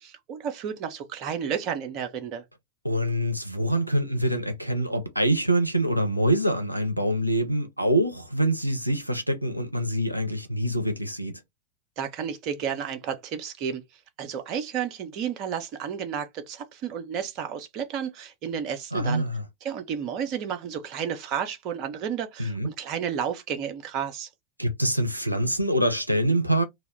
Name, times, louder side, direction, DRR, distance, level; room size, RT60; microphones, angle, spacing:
voice 1, 0.0-2.4 12.0-13.8 14.2-19.2 19.6-24.3, right 8 dB, 40° right, 0.5 m, -32 dB
voice 2, 2.8-11.3 18.9-19.4 22.4-22.7 24.6-26.6, right 1 dB, 90° right, 0.5 m, -25 dB
2.2 x 2.0 x 3.3 m
figure-of-eight pair, 90°, 0 cm